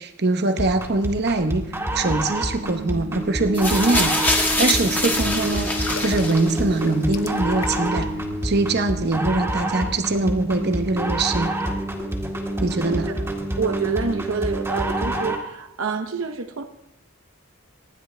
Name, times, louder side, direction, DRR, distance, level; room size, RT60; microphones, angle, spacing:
voice 1, 0.0-1.6 1.9-4.1 4.6-8.1 8.4-11.5 12.6-13.1, right 2 dB, 50° right, 1.0 m, -23 dB
sound 1, 0.6-15.5, right 1 dB, 10° right, 2.0 m, -27 dB
sound 2, 3.5-6.8 7.7-7.8, left 2 dB, 10° left, 1.7 m, -24 dB
sound 3, 5.8-8.0 8.3-8.5, left 7 dB, 90° left, 0.8 m, -36 dB
voice 2, 13.6-16.7, right 4 dB, 75° right, 0.9 m, -27 dB
26.5 x 10.5 x 3.4 m
head